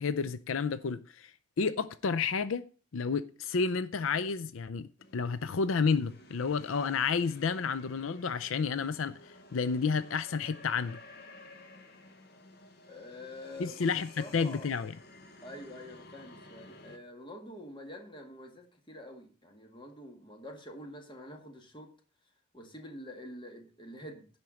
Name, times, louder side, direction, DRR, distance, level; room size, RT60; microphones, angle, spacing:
voice 1, 0.0-2.6 2.9-4.9 5.1-11.0 13.6-14.9, left 5 dB, 80° left, 0.5 m, -31 dB
sound 1, 5.0-17.0, left 2 dB, 50° left, 1.4 m, -54 dB
voice 2, 12.9-13.9 14.2-14.7 15.4-21.9 22.5-24.4, left 1 dB, 25° left, 1.8 m, -47 dB
10.5 x 4.5 x 7.5 m
head